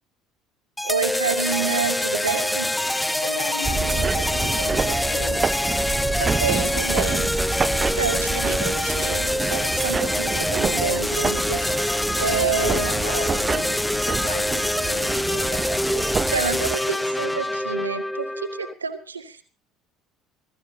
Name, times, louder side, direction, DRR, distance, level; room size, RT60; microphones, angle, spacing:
sound 1, 0.8-18.7, left 1 dB, 5° left, 0.7 m, -25 dB
voice 1, 0.8-2.7 6.2-7.3 7.7-12.9 15.9-16.0 16.3-19.4, right 5 dB, 85° right, 6 dB, 2.1 m, -29 dB
voice 2, 3.2-5.5 12.5-15.9, left 3 dB, 85° left, 4 dB, 3.5 m, -36 dB
sound 2, 3.6-16.8, right 5 dB, 25° right, 0.8 m, -28 dB
26.0 x 15.5 x 2.8 m, 0.38 s
figure-of-eight pair, 60°, 0 cm